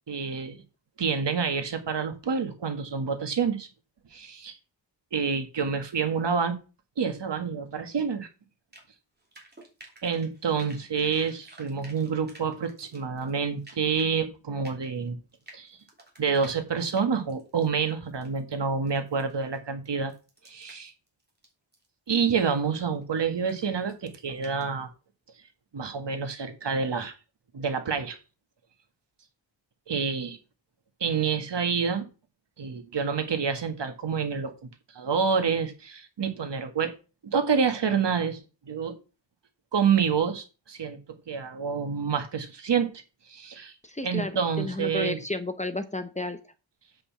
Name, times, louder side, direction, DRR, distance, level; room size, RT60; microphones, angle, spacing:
voice 1, 0.1-0.6 1.0-3.7 4.1-4.6 5.1-6.6 7.0-8.3 10.0-15.2 15.5-15.8 16.2-20.1 20.4-20.9 22.1-24.9 25.7-27.1 27.5-28.2 29.9-30.4 31.0-32.1 32.6-34.5 34.9-36.9 37.2-39.0 39.7-41.0 41.3-42.9 43.3-43.8 44.0-45.2, right 6 dB, 65° right, 7 dB, 1.9 m, -28 dB
sound 1, 8.7-8.8 9.2-14.2 14.6-18.6 18.9-19.6 19.8-22.5 22.8-23.0 23.4-23.9 24.2-24.6, right 1 dB, 20° right, 3.4 m, -51 dB
voice 2, 43.8-44.3 44.6-46.4, left 2 dB, 15° left, 9 dB, 0.8 m, -32 dB
7.9 x 5.6 x 7.3 m, 0.32 s
wide cardioid pair, 160°, 44 cm